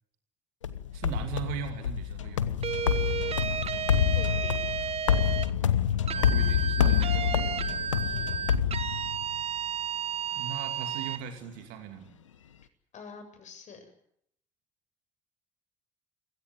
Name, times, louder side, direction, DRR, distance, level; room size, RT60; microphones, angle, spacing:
sound 1, 0.6-9.4, left 8 dB, 85° left, 1.1 m, -27 dB
voice 1, 0.9-2.5 6.1-7.7 10.3-12.2, right 8 dB, 65° right, 6 dB, 2.7 m, -39 dB
sound 2, 2.6-5.5 6.1-11.2, right 8 dB, 40° right, 1.2 m, -33 dB
voice 2, 3.6-4.6 8.0-8.4 12.9-13.9, left 5 dB, 50° left, 8 dB, 7.9 m, -47 dB
29.5 x 17.0 x 9.4 m, 0.72 s
hypercardioid pair, 55°, 16 cm